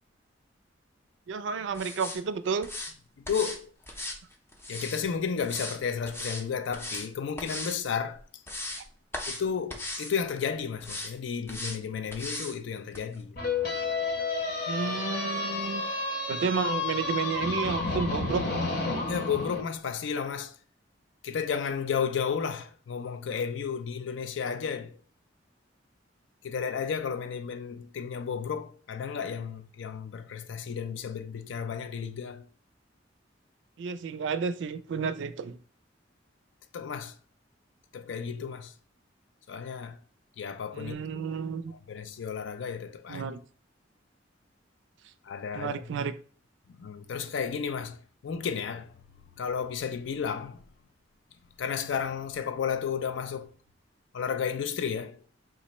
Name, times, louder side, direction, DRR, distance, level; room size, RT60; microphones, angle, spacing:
voice 1, 1.3-2.7 14.7-15.9 16.3-18.6 33.8-35.6 40.7-41.7 43.1-43.4 45.5-46.1, right 5 dB, 70° right, 0.3 m, -31 dB
sound 1, 1.7-2.2 2.6-2.9 3.2-3.6 3.9-5.0 5.4-5.8 6.0-6.4 6.7-7.1 7.4-7.8 8.2-8.8 9.1-9.4 9.7-10.1 10.8-11.1 11.5-11.8 12.1-12.5 12.9-13.0, left 1 dB, 15° left, 0.5 m, -37 dB
voice 2, 3.2-3.7 4.7-8.2 9.3-13.4 16.3-16.5 19.0-20.6 21.2-25.0 26.4-32.5 36.7-37.1 37.9-38.7 39.5-40.0 40.4-41.0 41.7-43.3 45.2-45.8 46.7-48.9 49.4-50.6 51.6-53.5 54.1-55.2, left 6 dB, 75° left, 0.4 m, -33 dB
sound 2, 13.4-19.6, left 3 dB, 55° left, 1.0 m, -31 dB
3.0 x 2.4 x 4.1 m
head